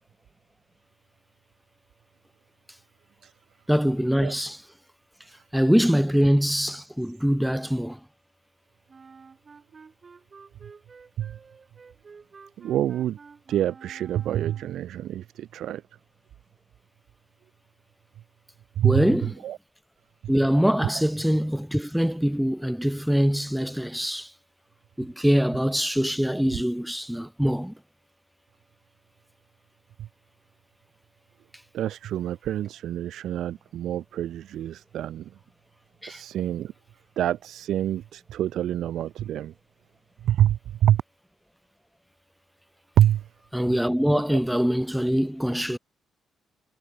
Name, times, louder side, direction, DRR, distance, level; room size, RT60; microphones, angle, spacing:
voice 1, 3.7-4.6 5.5-8.0 18.8-19.3 20.3-24.3 25.0-27.7 36.0-36.2 43.5-45.8, equal, ahead, 0.4 m, -23 dB
Wind instrument woodwind instrument, 8.9-14.9, right 5 dB, 35° right, 4.2 m, -50 dB
voice 2, 12.6-13.2 13.5-15.8 18.8-19.6 26.5-26.6 30.0-30.1 31.7-35.3 36.1-36.7 37.2-39.5 40.2-41.0 43.0-43.3 44.1-44.2, right 11 dB, 75° right, 0.5 m, -26 dB
cardioid pair, 100°, 0 cm